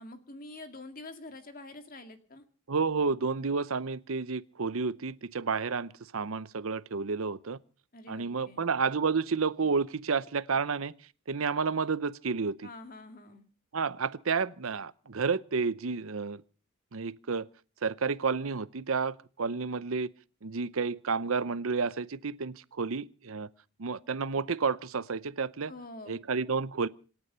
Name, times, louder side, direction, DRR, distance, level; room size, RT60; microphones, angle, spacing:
voice 1, 0.0-2.4 7.9-8.7 12.6-13.5 25.7-26.2, left 2 dB, 40° left, 2.1 m, -46 dB
voice 2, 2.7-7.6 8.1-10.9 11.3-12.7 13.7-16.4 16.9-17.5 17.8-20.1 20.4-23.5 23.8-25.7 26.1-26.9, right 5 dB, 70° right, 0.7 m, -31 dB
26.5 x 9.6 x 5.6 m
head